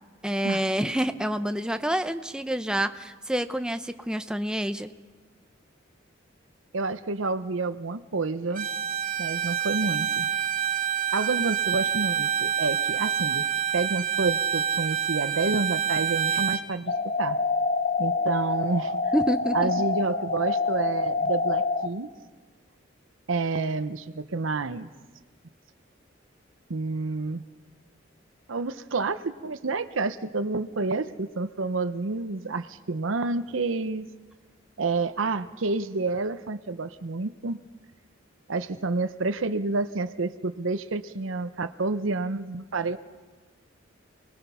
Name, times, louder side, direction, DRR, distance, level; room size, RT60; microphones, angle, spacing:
voice 1, 0.2-4.9 19.1-19.7, equal, 5° right, 9 dB, 0.7 m, -28 dB
voice 2, 6.7-8.7 9.2-10.3 11.1-13.4 13.7-16.9 17.2-17.4 18.0-19.0 19.5-22.1 23.3-24.9 26.7-27.4 28.5-34.1 34.8-37.6 38.5-43.0, right 3 dB, 85° right, 11 dB, 0.8 m, -29 dB
Bowed string instrument, 8.5-16.7, right 8 dB, 45° right, 1.1 m, -27 dB
sound 1, 16.9-21.9, left 3 dB, 50° left, 1.0 m, -26 dB
29.0 x 20.5 x 5.6 m, 1.4 s
head